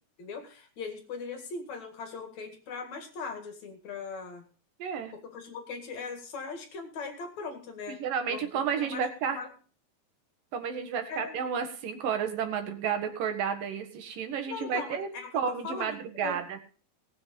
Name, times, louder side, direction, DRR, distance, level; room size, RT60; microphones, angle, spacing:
voice 1, 0.2-4.4 5.3-8.0 8.3-9.5 11.1-11.4 14.5-15.3 15.6-16.4, left 4 dB, 55° left, 5 dB, 3.2 m, -39 dB
voice 2, 4.8-5.1 7.9-9.4 10.5-15.1 15.3-16.6, right 7 dB, 80° right, 6 dB, 3.4 m, -31 dB
19.0 x 7.8 x 5.3 m, 0.37 s
omnidirectional pair, 3.9 m